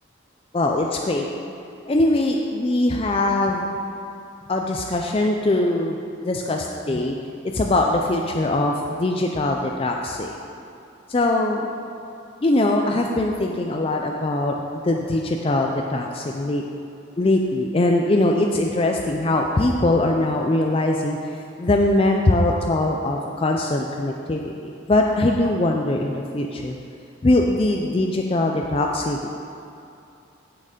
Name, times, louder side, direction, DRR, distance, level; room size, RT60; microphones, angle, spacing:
voice 1, 0.5-1.3 1.9-3.7 4.5-6.0 6.2-7.2 7.5-10.4 11.1-11.7 12.4-16.6 17.2-26.8 27.2-29.4, left 2 dB, 25° left, 1 dB, 0.4 m, -22 dB
7.9 x 7.2 x 5.0 m, 2.6 s
head